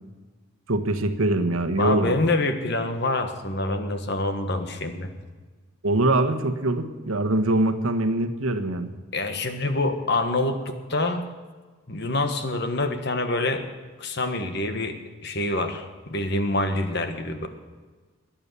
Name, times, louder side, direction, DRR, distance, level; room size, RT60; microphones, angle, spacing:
voice 1, 0.7-2.1 5.8-8.9, right 2 dB, 75° right, 8 dB, 1.3 m, -23 dB
voice 2, 1.8-5.1 9.1-11.3 11.9-13.6 14.0-17.5, left 2 dB, 50° left, 7 dB, 1.5 m, -26 dB
22.0 x 8.9 x 6.9 m, 1.3 s
head